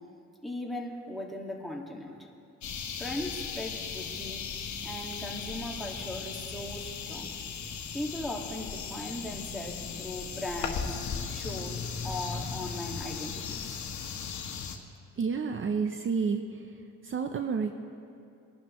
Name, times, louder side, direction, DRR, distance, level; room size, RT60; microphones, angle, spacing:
voice 1, 0.4-2.3 3.0-4.4 4.8-7.4 7.9-10.9 11.3-13.8, left 1 dB, ahead, 0 dB, 2.0 m, -38 dB
sound 1, 2.6-14.8, left 6 dB, 70° left, 1.3 m, -37 dB
voice 2, 15.2-16.7 17.0-17.7, right 5 dB, 40° right, 6 dB, 0.7 m, -30 dB
22.5 x 11.5 x 3.2 m, 2.6 s
cardioid pair, 90°, 30 cm